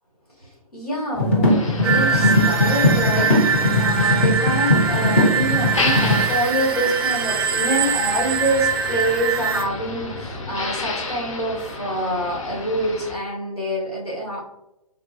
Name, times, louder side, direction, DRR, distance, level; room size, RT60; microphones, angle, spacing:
voice 1, 0.4-14.5, right 1 dB, 85° left, -5 dB, 1.4 m, -26 dB
sound 1, 1.2-6.3, left 1 dB, 20° left, 0.5 m, -19 dB
Motor vehicle (road), 1.5-13.2, left 3 dB, 55° left, 0.7 m, -31 dB
sound 2, 1.8-9.6, right 6 dB, 40° right, 0.4 m, -23 dB
3.6 x 2.4 x 2.7 m, 0.88 s
figure-of-eight pair, 130°, 19 cm